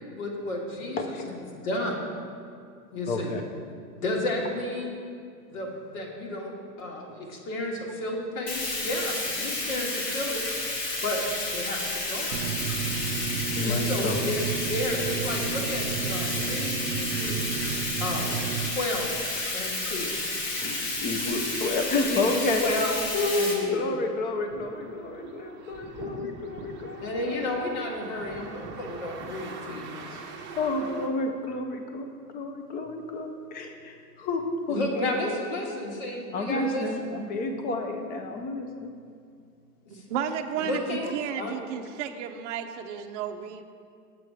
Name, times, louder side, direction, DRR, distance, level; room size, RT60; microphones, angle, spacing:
voice 1, 0.2-1.0 1.6-2.0 2.9-3.3 4.0-5.0 5.5-6.5 6.8-10.4 11.0-11.2 11.5-12.4 13.6-17.5 18.0-19.1 19.5-20.2 22.1-23.0 23.3-23.8 27.0-29.9 34.7-36.8 39.9-40.0 40.6-41.5, left 1 dB, 55° left, -1 dB, 1.9 m, -32 dB
voice 2, 3.1-3.4 13.5-14.4 20.5-22.7 23.1-27.4 30.1-32.1 32.3-34.8 36.3-38.9, left 2 dB, 20° left, 5 dB, 0.6 m, -30 dB
Bathtub (filling or washing), 8.5-23.5, left 2 dB, 85° left, 2.1 m, -31 dB
sound 1, 12.3-18.7, right 7 dB, 85° right, 0.7 m, -32 dB
sound 2, 24.5-31.1, right 4 dB, 25° right, 0.9 m, -42 dB
voice 3, 39.9-43.6, right 8 dB, 50° right, 6 dB, 0.6 m, -33 dB
7.6 x 6.5 x 4.9 m, 2.4 s
hypercardioid pair, 120°, 49 cm